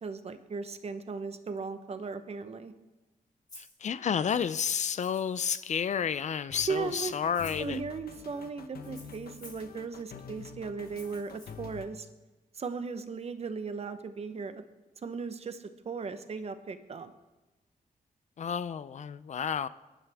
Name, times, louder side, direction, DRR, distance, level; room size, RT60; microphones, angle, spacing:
voice 1, 0.0-2.7 6.5-7.1 7.6-12.1 12.5-14.6 15.0-17.1, right 4 dB, 45° right, 10 dB, 0.9 m, -37 dB
Rattle (instrument), 3.5-3.8 4.9-5.8 6.8-7.7 8.8-9.7 10.8-11.5, left 2 dB, 25° left, 2.9 m, -52 dB
voice 2, 3.6-7.8 18.4-19.7, left 7 dB, 50° left, 15 dB, 0.4 m, -31 dB
sound 1, 6.5-11.9, left 6 dB, 85° left, 1.0 m, -47 dB
22.0 x 11.0 x 3.5 m, 1.1 s
wide cardioid pair, 150°, 15 cm